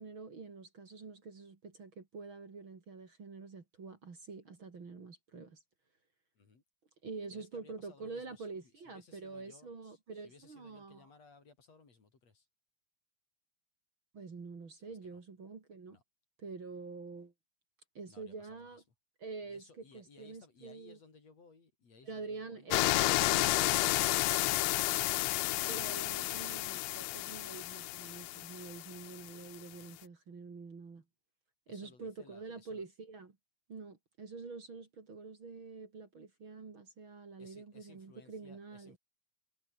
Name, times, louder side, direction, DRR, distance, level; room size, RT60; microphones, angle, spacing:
voice 1, 0.0-5.6 7.0-11.0 14.1-16.0 16.4-17.3 17.9-18.8 19.2-21.0 22.1-24.0 25.7-31.0 31.7-33.4 33.7-39.0, right 4 dB, 40° right, 3.4 m, -47 dB
voice 2, 7.3-12.5 14.9-15.2 15.9-16.0 18.1-18.8 19.5-22.7 31.7-32.8 37.4-39.0, left 4 dB, 55° left, 5.4 m, -61 dB
sound 1, 22.7-29.3 29.5-29.6, left 18 dB, 85° left, 1.5 m, -31 dB
omnidirectional pair, 3.6 m